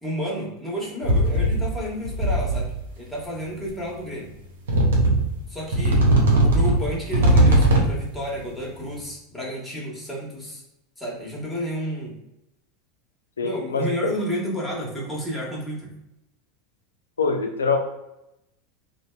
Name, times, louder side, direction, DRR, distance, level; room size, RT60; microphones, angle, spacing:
voice 1, 0.0-4.3 5.5-6.1 6.4-10.6 11.0-12.2 13.4-15.9, equal, 5° left, -4 dB, 1.0 m, -31 dB
sound 1, 1.0-1.8 2.1-2.8 3.7-3.8 4.7-5.4 5.7-8.1, right 1 dB, 75° right, 0.5 m, -19 dB
voice 2, 13.4-13.9 17.2-17.8, left 4 dB, 80° left, 3 dB, 0.4 m, -24 dB
2.7 x 2.1 x 2.2 m, 0.87 s
figure-of-eight pair, 85°, 0 cm